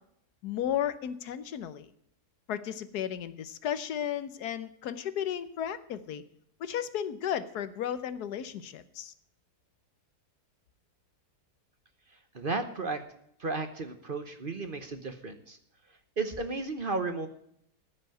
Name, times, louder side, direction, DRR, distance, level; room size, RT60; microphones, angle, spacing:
voice 1, 0.4-1.9 2.5-6.2 6.6-9.1, left 9 dB, 80° left, 13 dB, 1.4 m, -34 dB
voice 2, 12.3-13.0 13.4-15.6 16.2-17.3, right 3 dB, 40° right, 8 dB, 1.0 m, -33 dB
15.0 x 5.6 x 9.1 m, 0.71 s
omnidirectional pair, 1.7 m